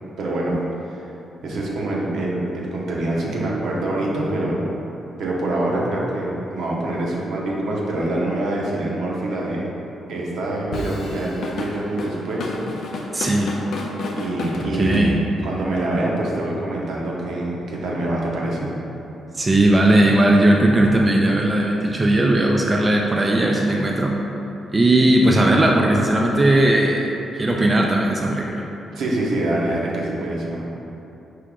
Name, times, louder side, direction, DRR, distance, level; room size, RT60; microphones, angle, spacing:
voice 1, 0.2-0.6 0.9-1.0 1.4-4.8 5.2-9.6 10.1-12.6 12.9-13.1 14.2-18.7 28.9-30.6, right 1 dB, 75° right, -3 dB, 0.8 m, -25 dB
Drum kit / Drum, 10.7-15.5, left 2 dB, 70° left, 0.5 m, -30 dB
voice 2, 13.1-13.6 14.8-15.2 19.3-24.2 24.7-27.1 27.3-28.6, right 1 dB, 20° right, -1 dB, 0.3 m, -17 dB
4.6 x 2.9 x 3.6 m, 3.0 s
cardioid pair, 120°, 0 cm